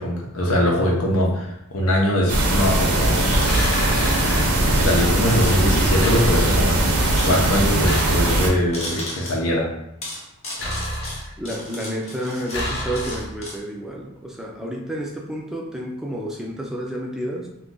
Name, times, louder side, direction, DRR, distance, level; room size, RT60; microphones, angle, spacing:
voice 1, 0.0-3.3 4.6-6.8 7.2-9.7, equal, 90° left, -1 dB, 0.8 m, -22 dB
sound 1, 2.3-8.5, right 1 dB, 90° right, 0.7 m, -20 dB
sound 2, 3.0-4.2 4.5-4.6 5.2-5.6 5.9-6.0 7.0-7.7 8.7-9.4 10.0-13.6, left 1 dB, 30° left, 0.7 m, -35 dB
sound 3, 3.4-4.5 6.0-6.8 7.8-8.7 10.6-11.5 12.5-13.5, left 1 dB, 60° left, 0.8 m, -30 dB
voice 2, 11.4-17.5, equal, ahead, -1 dB, 0.3 m, -30 dB
2.7 x 2.4 x 3.8 m, 0.84 s
head